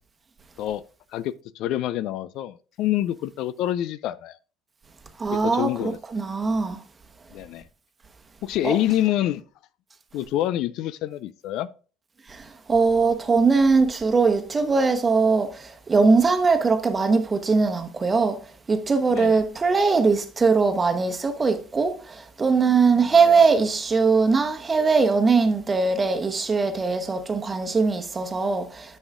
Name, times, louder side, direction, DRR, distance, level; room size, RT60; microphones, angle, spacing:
voice 1, 1.1-4.4 5.4-6.0 7.3-7.7 8.4-9.4 10.1-11.7 19.1-19.4 23.0-23.1, left 13 dB, 60° left, 0.3 m, -27 dB
voice 2, 5.2-6.8 8.6-8.8 12.3-18.4 18.7-29.0, right 4 dB, 25° right, 1.1 m, -21 dB
9.6 x 6.3 x 2.5 m
hypercardioid pair, 65°, 0 cm